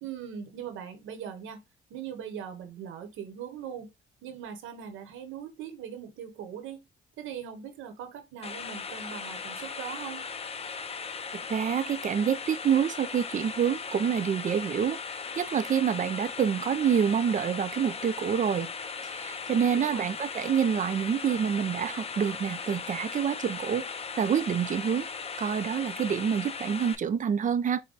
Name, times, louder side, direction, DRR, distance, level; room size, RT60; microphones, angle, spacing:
voice 1, 0.0-1.6 1.9-3.9 4.2-6.8 7.2-10.3 19.8-20.1, right 8 dB, 85° right, 1.1 m, -40 dB
sound 1, 8.4-27.0, left 5 dB, 30° left, 0.6 m, -38 dB
voice 2, 11.3-15.0 15.4-18.7 19.1-23.9 24.2-25.1 25.4-27.8, right 8 dB, 40° right, 0.5 m, -27 dB
5.2 x 2.2 x 3.9 m
cardioid pair, 90°, 20 cm